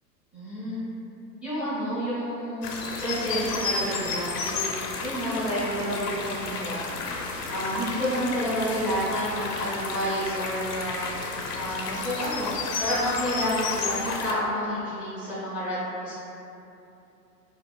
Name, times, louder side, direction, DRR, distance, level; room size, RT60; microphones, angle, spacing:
voice 1, 0.3-0.8 1.4-2.7 3.0-6.8 7.5-11.0 11.5-12.5 12.8-16.1, equal, 5° right, -12 dB, 0.4 m, -29 dB
sound 1, 2.6-14.3, left 4 dB, 70° left, 0.6 m, -32 dB
2.5 x 2.3 x 3.2 m, 2.8 s
hypercardioid pair, 105°, 48 cm